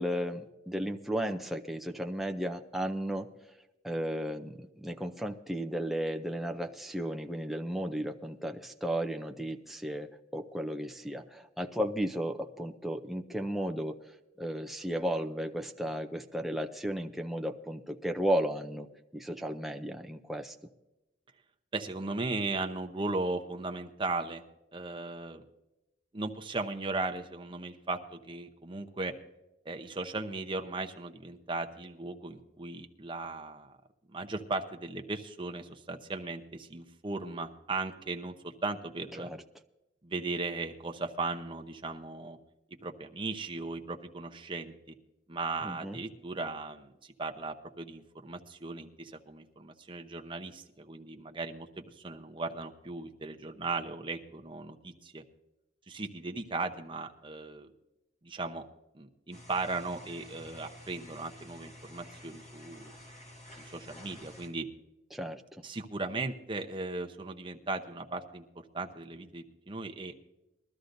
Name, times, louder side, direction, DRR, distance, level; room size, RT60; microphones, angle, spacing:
voice 1, 0.0-3.3 3.8-14.0 14.4-18.9 19.1-20.5 39.2-39.4 45.6-46.0 65.1-65.6, equal, ahead, 4 dB, 0.5 m, -34 dB
voice 2, 21.7-24.4 24.7-25.4 26.1-29.1 29.6-33.7 34.1-39.3 40.0-42.4 42.8-44.7 45.3-55.2 55.9-57.7 58.2-58.6 58.9-62.9 63.6-64.7 65.6-68.4 68.7-70.1, right 3 dB, 25° right, 5 dB, 0.8 m, -37 dB
sound 1, 59.3-64.5, left 1 dB, 35° left, 4.1 m, -51 dB
21.5 x 13.0 x 2.6 m, 0.97 s
head